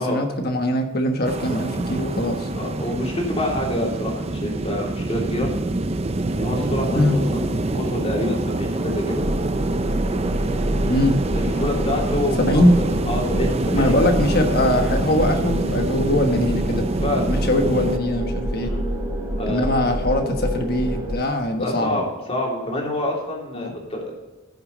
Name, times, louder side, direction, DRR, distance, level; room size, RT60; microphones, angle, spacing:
voice 1, 0.0-2.5 6.9-7.2 10.8-11.2 12.4-12.7 13.7-16.8 17.3-18.7 19.4-22.0 23.5-23.7, left 1 dB, 45° left, 4 dB, 1.4 m, -21 dB
sound 1, 1.2-18.0, right 2 dB, 30° right, 0.6 m, -26 dB
voice 2, 2.6-5.5 6.3-9.3 11.3-12.6 13.1-14.0 17.0-17.3 18.6-18.8 19.4-19.9 21.6-24.1, left 1 dB, 30° left, -2 dB, 3.0 m, -27 dB
sound 2, 9.2-21.2, right 1 dB, 15° right, 2.6 m, -27 dB
14.5 x 6.9 x 4.0 m, 1.1 s
head